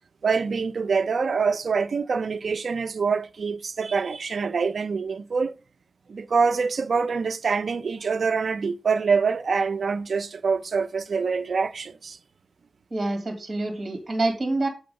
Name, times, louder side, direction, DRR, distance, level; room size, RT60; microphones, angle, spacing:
voice 1, 0.2-5.5 6.1-12.2, right 5 dB, 70° right, 0.5 m, -25 dB
voice 2, 12.9-14.7, right 2 dB, 40° right, 2.4 m, -26 dB
7.7 x 3.8 x 5.3 m
wide cardioid pair, 115°, 0 cm